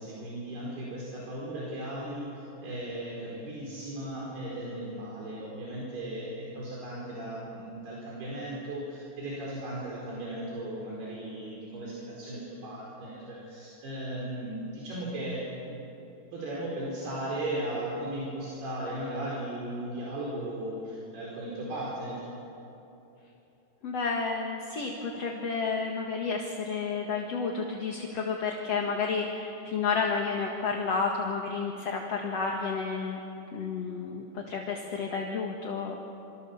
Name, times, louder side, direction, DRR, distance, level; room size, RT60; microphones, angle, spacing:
voice 1, 0.0-15.8 16.3-22.2, right 1 dB, 70° right, -5 dB, 6.6 m, -36 dB
voice 2, 23.8-33.2 33.5-36.0, left 5 dB, 50° left, 1 dB, 2.3 m, -31 dB
28.5 x 25.5 x 7.2 m, 3.0 s
omnidirectional pair, 4.8 m